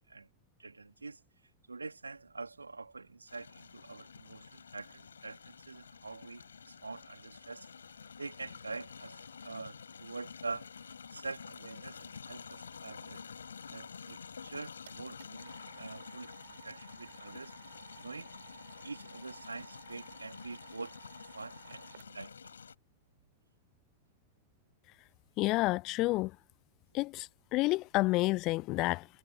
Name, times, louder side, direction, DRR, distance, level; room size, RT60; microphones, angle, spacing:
voice 1, 0.6-1.2 1.7-7.7 8.2-10.7 11.1-13.2 13.7-17.5 18.0-18.3 18.8-20.9 21.3-22.3, right 3 dB, 80° right, 3.0 m, -45 dB
sound 1, 3.3-22.7, left 6 dB, 70° left, 4.6 m, -49 dB
sound 2, 14.4-22.4, right 10 dB, 60° right, 5.3 m, -57 dB
voice 2, 25.4-26.3 26.9-29.1, left 21 dB, 40° left, 0.4 m, -29 dB
figure-of-eight pair, 90°, 0 cm